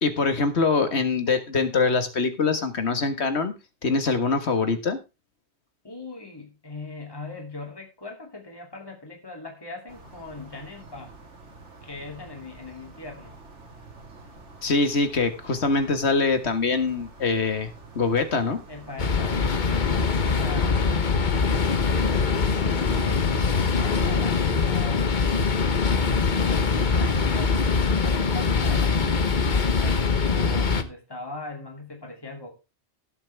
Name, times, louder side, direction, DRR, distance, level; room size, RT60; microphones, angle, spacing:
voice 1, 0.0-3.5 3.8-5.0 14.6-17.7 18.0-18.6, left 4 dB, 70° left, 1.9 m, -23 dB
voice 2, 5.8-11.2 11.8-13.4 18.7-21.1 21.5-21.8 22.5-25.1 27.0-32.6, left 3 dB, 20° left, 2.8 m, -40 dB
sound 1, 9.9-20.3, right 3 dB, 80° right, 2.5 m, -47 dB
sound 2, 19.0-30.8, left 5 dB, 45° left, 1.1 m, -23 dB
17.5 x 7.6 x 3.4 m
omnidirectional pair, 1.2 m